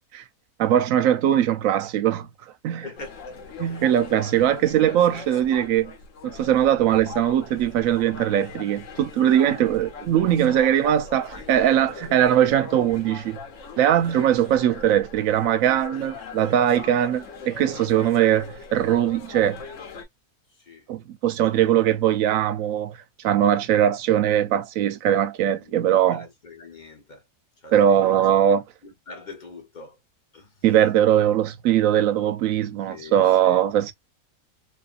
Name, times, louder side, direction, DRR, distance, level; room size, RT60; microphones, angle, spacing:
voice 1, 0.6-2.3 2.6-2.8 3.6-5.9 6.2-13.4 13.8-19.6 20.9-23.0 23.2-26.3 27.7-28.6 30.6-33.9, right 10 dB, 70° right, 0.9 m, -21 dB
voice 2, 2.8-4.4 10.3-11.7 12.1-12.3 17.6-17.9 20.5-20.9 21.2-22.0 25.4-27.3 27.6-28.2 28.8-30.0 30.3-30.8 32.9-33.8, left 3 dB, 40° left, 0.9 m, -45 dB
sound 1, 3.0-20.1, left 4 dB, 60° left, 1.1 m, -41 dB
2.7 x 2.6 x 2.3 m
omnidirectional pair, 1.6 m